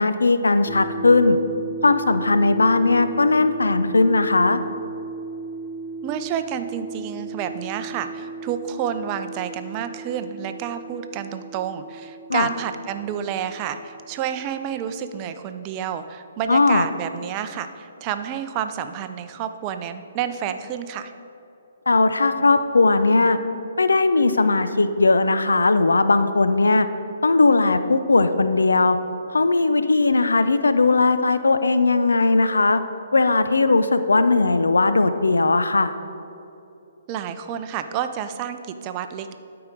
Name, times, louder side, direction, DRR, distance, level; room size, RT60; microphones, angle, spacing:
voice 1, 0.0-1.4 1.8-4.6 12.3-12.5 16.5-16.9 21.9-23.4 23.8-26.9 27.2-29.0 29.3-32.8 33.1-35.9, left 3 dB, 85° left, 10 dB, 0.5 m, -18 dB
sound 1, 0.7-14.6, right 3 dB, ahead, 1.0 m, -35 dB
voice 2, 6.0-21.1 37.1-39.3, right 9 dB, 30° right, 9 dB, 0.5 m, -29 dB
12.5 x 4.8 x 5.1 m, 2.7 s
hypercardioid pair, 135°, 0 cm